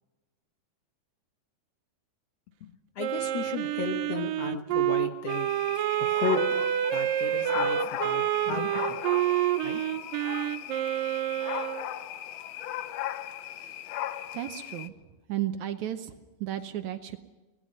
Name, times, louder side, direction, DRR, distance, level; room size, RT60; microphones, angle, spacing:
voice 1, 2.6-5.5 6.0-6.4 6.9-9.0 9.6-9.8, left 6 dB, 60° left, 5 dB, 1.8 m, -34 dB
Wind instrument woodwind instrument, 3.0-11.9, right 12 dB, 90° right, 2.5 m, -28 dB
sound 1, 5.3-14.9, left 12 dB, 75° left, 2.2 m, -37 dB
voice 2, 14.3-14.9 15.3-16.1 16.4-17.2, right 12 dB, 70° right, 8 dB, 2.0 m, -33 dB
25.0 x 19.0 x 5.5 m, 1.2 s
omnidirectional pair, 3.8 m